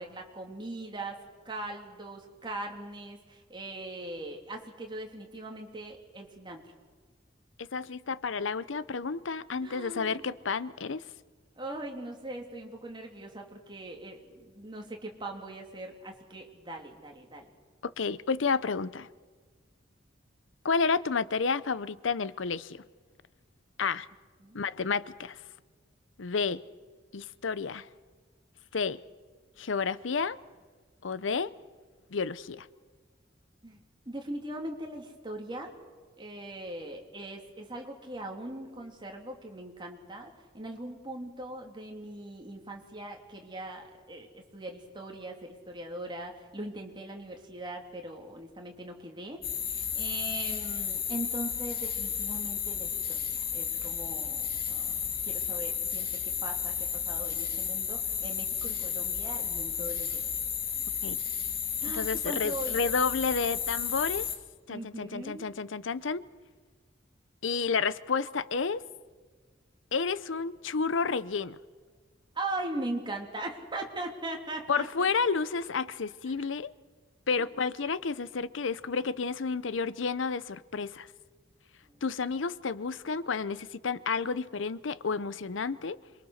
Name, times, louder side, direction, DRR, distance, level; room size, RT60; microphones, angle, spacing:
voice 1, 0.0-6.7 9.6-10.2 11.6-17.5 24.4-24.6 33.6-33.8 34.1-35.7 36.2-49.4 49.7-54.4 54.7-55.0 55.2-60.3 61.8-62.8 64.7-65.5 72.3-75.1 77.4-77.5 81.8-82.0, right 1 dB, 25° right, 3.1 m, -40 dB
voice 2, 7.6-11.0 17.8-19.1 20.6-22.8 23.8-24.1 24.5-25.4 26.2-26.6 27.1-27.9 28.7-29.0 29.6-30.4 31.0-31.5 32.1-32.7 61.0-61.2 61.9-64.3 64.7-66.3 67.4-68.8 69.9-71.6 74.7-76.7 77.3-81.1 82.0-86.0, left 5 dB, 85° left, 0.7 m, -31 dB
sound 1, 49.4-64.4, left 8 dB, 55° left, 2.5 m, -33 dB
27.0 x 22.5 x 6.5 m
head